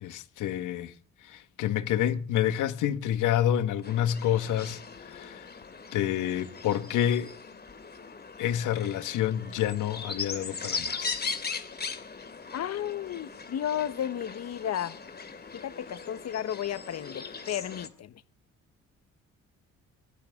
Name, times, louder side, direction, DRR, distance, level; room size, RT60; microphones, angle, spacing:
voice 1, 0.0-0.9 1.2-5.5 5.9-7.3 8.4-11.3, left 11 dB, 85° left, 1.6 m, -28 dB
sound 1, 3.8-17.9, left 4 dB, 35° left, 2.6 m, -39 dB
voice 2, 12.5-15.0 15.5-18.1, left 10 dB, 60° left, 1.0 m, -33 dB
22.0 x 17.0 x 3.7 m
cardioid pair, 90°, 30 cm